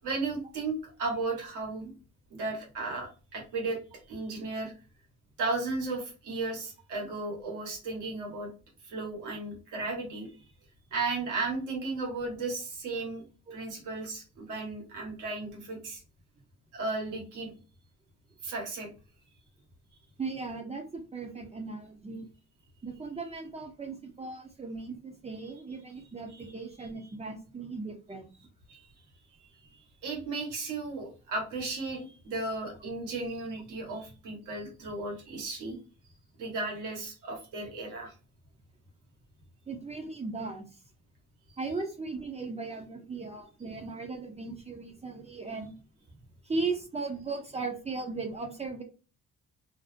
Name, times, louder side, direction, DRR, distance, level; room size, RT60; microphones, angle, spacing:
voice 1, 0.0-1.9 2.3-3.8 4.1-4.7 5.4-8.5 8.8-10.3 10.9-13.2 13.5-16.0 16.7-17.5 18.4-18.9 26.3-26.5 26.8-26.9 28.7-28.9 29.7-35.8 36.0-38.1 41.5-41.6, right 3 dB, 85° right, 0 dB, 1.2 m, -35 dB
voice 2, 20.2-22.3 22.8-28.3 39.7-40.6 41.6-45.8 46.4-48.8, right 3 dB, 20° right, 3 dB, 0.5 m, -37 dB
2.6 x 2.0 x 2.4 m, 0.35 s
cardioid pair, 90°, 30 cm